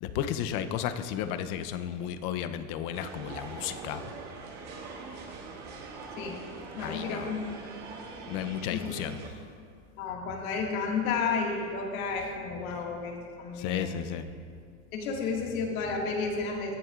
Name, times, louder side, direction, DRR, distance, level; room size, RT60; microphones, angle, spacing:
voice 1, 0.0-4.0 6.8-7.3 8.3-9.4 13.5-14.3, left 9 dB, 50° left, 10 dB, 0.7 m, -33 dB
sound 1, 2.9-9.3, right 4 dB, 40° right, 1.9 m, -43 dB
voice 2, 6.8-7.4 8.7-8.8 10.0-14.0 14.9-16.7, left 5 dB, 80° left, 0 dB, 2.0 m, -32 dB
21.5 x 7.4 x 2.5 m, 2.2 s
supercardioid pair, 130°, 42 cm